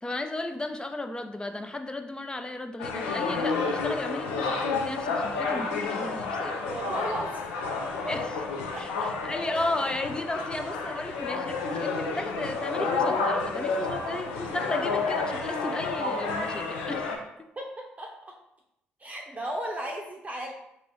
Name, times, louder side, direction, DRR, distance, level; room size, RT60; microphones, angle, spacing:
voice 1, 0.0-6.6 8.1-8.2 8.8-8.9 9.2-17.2, left 2 dB, 15° left, 6 dB, 0.4 m, -34 dB
sound 1, 2.8-17.2, left 4 dB, 80° left, 0.4 m, -30 dB
voice 2, 6.6-7.4 8.0-8.1 8.7-9.3 17.6-17.7 18.0-18.1 19.0-20.5, right 1 dB, 25° right, -1 dB, 0.6 m, -35 dB
3.8 x 2.6 x 3.0 m, 0.82 s
figure-of-eight pair, 45°, 5 cm